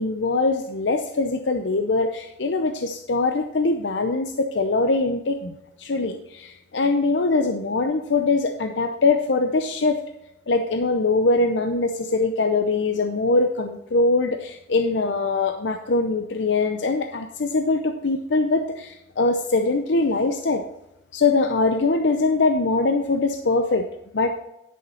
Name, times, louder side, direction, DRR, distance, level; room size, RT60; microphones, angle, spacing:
voice 1, 0.0-10.0 10.5-20.6 21.1-23.9 24.1-24.4, left 3 dB, 70° left, 6 dB, 0.6 m, -22 dB
11.0 x 6.5 x 4.3 m, 0.86 s
head